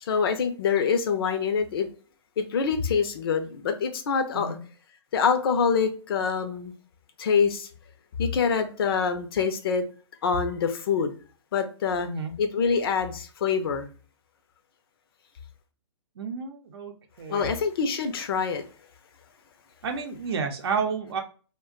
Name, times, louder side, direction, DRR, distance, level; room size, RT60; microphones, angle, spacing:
voice 1, 0.0-1.9 2.4-4.6 5.1-6.7 7.2-7.7 8.2-9.8 10.2-11.2 11.5-12.1 12.4-13.9 17.3-18.6, left 6 dB, 50° left, 0.6 m, -25 dB
voice 2, 12.0-12.3 16.2-16.9 17.2-17.5 19.8-21.2, right 5 dB, 55° right, 0.6 m, -30 dB
2.4 x 2.2 x 3.7 m
hypercardioid pair, 135°, 15 cm